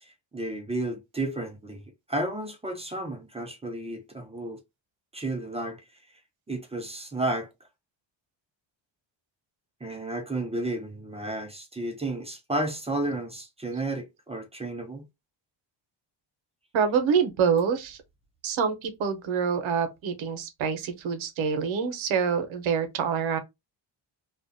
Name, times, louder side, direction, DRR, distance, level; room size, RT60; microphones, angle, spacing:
voice 1, 0.0-1.8 2.1-4.6 5.1-5.8 6.5-7.5 9.8-15.0, right 2 dB, 15° right, 0.3 m, -32 dB
voice 2, 16.7-18.0 18.4-23.4, right 6 dB, 80° right, 0.8 m, -26 dB
2.4 x 2.2 x 2.5 m
cardioid pair, 135°, 46 cm